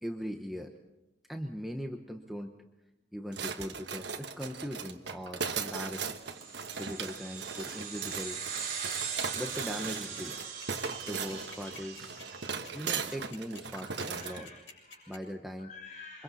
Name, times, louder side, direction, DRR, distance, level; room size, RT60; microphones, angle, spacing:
voice 1, 0.0-0.7 1.3-2.5 3.1-6.1 6.8-8.4 9.3-10.4 11.0-12.2 12.7-14.5 15.1-15.7, equal, ahead, 2 dB, 1.0 m, -40 dB
sound 1, 3.3-14.4, right 5 dB, 70° right, 1.2 m, -38 dB
sound 2, 6.2-13.0, right 7 dB, 45° right, 4.1 m, -40 dB
sound 3, 9.9-15.2, left 4 dB, 85° left, 7.5 m, -49 dB
voice 2, 10.9-11.4 11.7-11.8 13.9-15.1 15.6-16.2, left 4 dB, 40° left, 2 dB, 4.7 m, -50 dB
28.0 x 24.5 x 4.2 m, 0.98 s
head